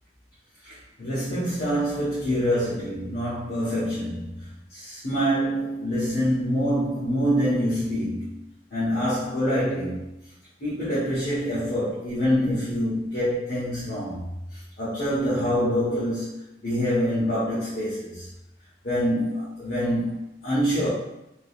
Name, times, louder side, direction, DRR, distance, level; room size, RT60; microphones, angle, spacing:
voice 1, 0.6-8.4 8.7-10.3 10.6-14.2 14.5-18.3 18.8-20.9, equal, 55° left, -11 dB, 1.2 m, -26 dB
3.8 x 2.9 x 2.4 m, 0.89 s
head